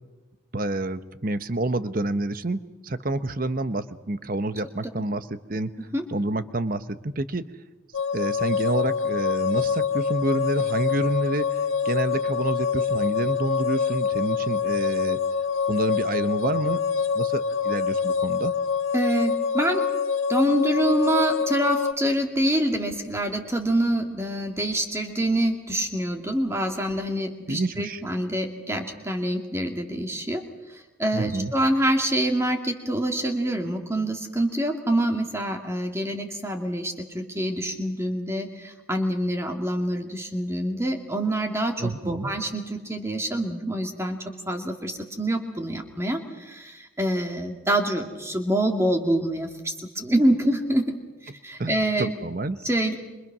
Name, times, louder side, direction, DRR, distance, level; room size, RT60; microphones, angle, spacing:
voice 1, 0.5-5.7 6.1-7.4 8.1-15.2 15.7-16.8 17.1-18.5 27.5-28.0 31.1-31.5 41.8-42.3 51.6-52.6, right 2 dB, 45° right, 12 dB, 1.0 m, -28 dB
sound 1, 7.9-21.9, left 6 dB, 85° left, 1.2 m, -25 dB
voice 2, 18.9-19.9 20.3-30.4 30.7-51.0 51.4-52.1 52.6-53.0, right 1 dB, 15° right, 3 dB, 2.3 m, -26 dB
27.0 x 25.0 x 6.2 m, 1.2 s
head